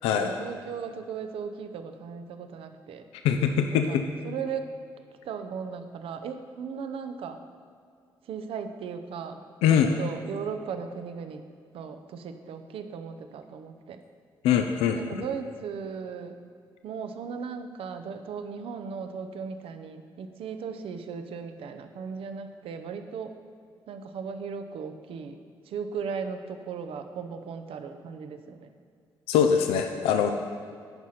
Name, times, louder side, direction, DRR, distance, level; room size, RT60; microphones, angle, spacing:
voice 1, 0.1-3.0 3.7-4.0 4.2-4.7 5.2-7.4 8.3-9.4 9.7-11.4 11.7-14.0 14.9-16.4 16.8-23.3 23.9-25.4 25.7-28.7, right 6 dB, 70° right, 8 dB, 0.6 m, -37 dB
voice 2, 3.2-4.0 9.6-9.9 14.4-15.0 29.3-30.3, left 8 dB, 85° left, 5 dB, 0.4 m, -22 dB
9.7 x 4.9 x 5.8 m, 2.2 s
supercardioid pair, 50°, 10 cm